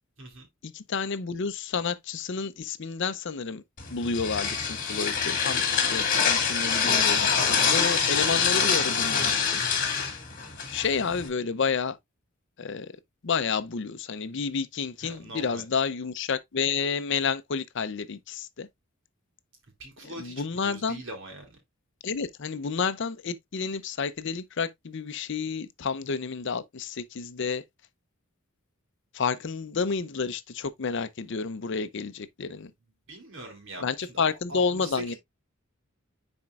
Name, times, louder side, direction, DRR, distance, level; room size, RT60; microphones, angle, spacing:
voice 1, 0.6-3.6 3.9-9.6 10.7-12.0 12.6-12.9 13.2-18.7 20.2-21.0 22.0-27.6 29.1-32.7 33.8-35.1, left 5 dB, 55° left, 0.5 m, -30 dB
sound 1, 3.8-11.3, left 6 dB, 40° left, 1.8 m, -25 dB
voice 2, 15.0-15.6 19.8-21.6 33.1-35.2, right 1 dB, 60° right, 2.8 m, -42 dB
10.0 x 4.3 x 2.4 m
head